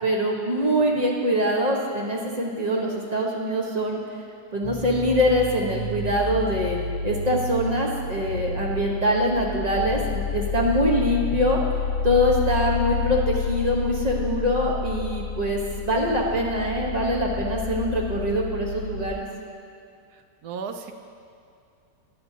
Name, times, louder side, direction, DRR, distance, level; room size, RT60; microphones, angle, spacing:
voice 1, 0.0-4.0 4.5-11.6 12.0-19.2, equal, 25° right, -2 dB, 1.1 m, -24 dB
sound 1, 4.6-19.1, left 5 dB, 90° left, 1.6 m, -30 dB
voice 2, 20.1-20.9, right 6 dB, 70° right, 6 dB, 1.1 m, -35 dB
15.0 x 9.8 x 2.8 m, 2.5 s
omnidirectional pair, 1.9 m